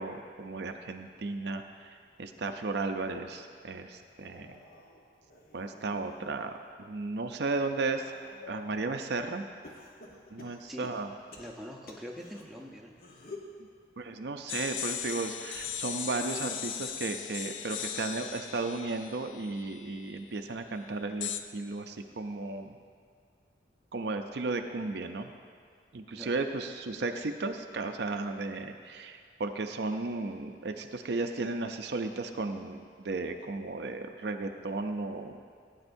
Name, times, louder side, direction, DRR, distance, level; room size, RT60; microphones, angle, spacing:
voice 1, 0.0-1.9 2.2-4.6 5.5-6.5 6.8-8.1 8.5-9.4 10.3-11.1 14.0-22.8 23.9-25.3 25.9-35.4, right 3 dB, 60° right, 6 dB, 0.5 m, -34 dB
sound 1, 4.0-6.3 6.8-8.8 9.6-12.4 12.9-13.6 14.8-17.6 18.0-18.4 19.6-19.7, left 3 dB, 50° left, 1.0 m, -52 dB
voice 2, 11.4-12.9 17.5-17.6 26.1-26.3, equal, ahead, -2 dB, 0.8 m, -44 dB
sound 2, 14.5-20.2 21.2-21.4, left 9 dB, 75° left, 0.4 m, -38 dB
16.5 x 9.0 x 2.6 m, 2.1 s
head